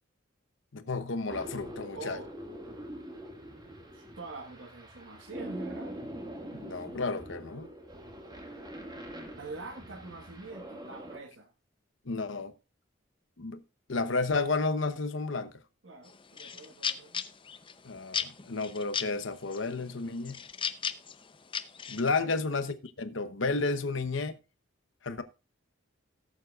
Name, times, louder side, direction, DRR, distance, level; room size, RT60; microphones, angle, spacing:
voice 1, 0.7-2.2 6.5-7.7 12.1-12.5 13.4-13.6 13.9-15.5 17.8-20.4 21.9-24.4 25.0-25.2, left 3 dB, 70° left, 1.0 m, -32 dB
sound 1, 1.3-11.2, right 1 dB, 20° right, 1.9 m, -44 dB
voice 2, 1.9-2.3 3.9-5.9 9.3-11.5 15.8-17.2 22.1-22.3, right 3 dB, 70° right, 1.5 m, -44 dB
sound 2, 16.1-17.8 18.1-19.1 19.5-19.9 20.2-22.1, left 7 dB, 25° left, 0.6 m, -35 dB
18.0 x 7.5 x 2.4 m
head